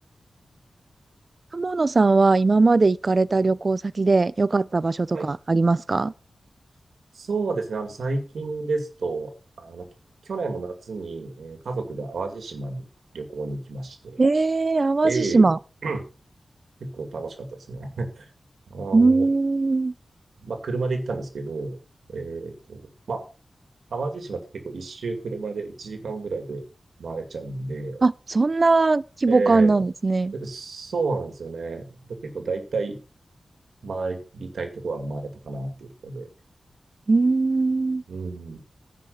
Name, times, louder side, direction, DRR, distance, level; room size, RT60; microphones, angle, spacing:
voice 1, 1.5-6.1 14.2-15.6 18.9-19.9 28.0-30.3 37.1-38.0, right 3 dB, 35° right, 0.5 m, -20 dB
voice 2, 7.1-9.3 9.6-9.9 10.2-12.8 13.1-14.2 15.0-15.5 15.8-16.0 16.8-18.3 18.7-19.3 20.4-21.8 22.1-23.3 23.9-26.6 27.0-28.0 29.3-29.8 30.3-33.0 33.8-36.3 38.1-38.6, right 3 dB, 85° right, 2.3 m, -31 dB
10.5 x 5.7 x 7.9 m
wide cardioid pair, 135°, 0 cm